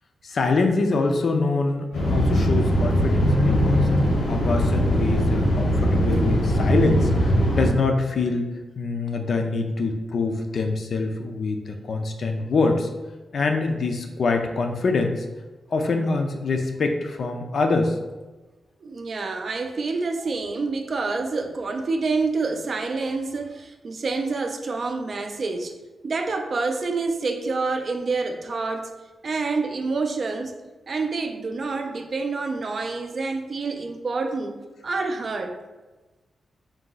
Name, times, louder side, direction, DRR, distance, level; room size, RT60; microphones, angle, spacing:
voice 1, 0.2-12.9 13.3-15.3 15.7-18.0, left 3 dB, 50° left, 5 dB, 0.4 m, -25 dB
sound 1, 1.9-7.7, equal, 80° left, 0.9 m, -20 dB
voice 2, 18.8-25.7 26.0-28.9 29.2-30.6 30.9-34.6 34.8-35.6, right 3 dB, 40° right, 5 dB, 0.3 m, -27 dB
3.8 x 2.6 x 3.8 m, 1.2 s
wide cardioid pair, 175°, 0 cm